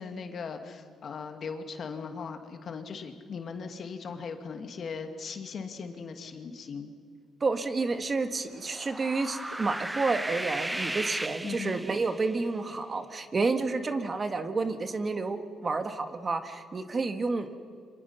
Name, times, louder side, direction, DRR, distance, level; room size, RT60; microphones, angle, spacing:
voice 1, 0.0-6.9 11.4-11.8, left 5 dB, 55° left, 6 dB, 2.2 m, -39 dB
voice 2, 7.4-17.6, right 3 dB, 35° right, 8 dB, 1.7 m, -30 dB
sound 1, 8.6-12.3, right 1 dB, 10° right, 0.7 m, -35 dB
29.0 x 25.5 x 5.6 m, 2.2 s
cardioid pair, 90°, 0 cm